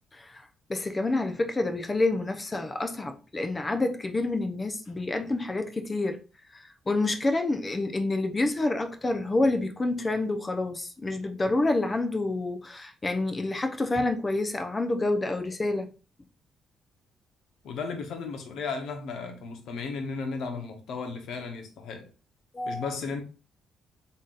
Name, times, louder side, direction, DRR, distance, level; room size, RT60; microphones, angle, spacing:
voice 1, 0.1-0.4 0.7-6.2 6.5-15.9 22.5-22.9, left 2 dB, 25° left, 0.7 m, -28 dB
voice 2, 17.6-22.1 22.6-23.2, left 4 dB, 75° left, 1.0 m, -35 dB
4.1 x 3.7 x 2.4 m
cardioid pair, 90°, 0 cm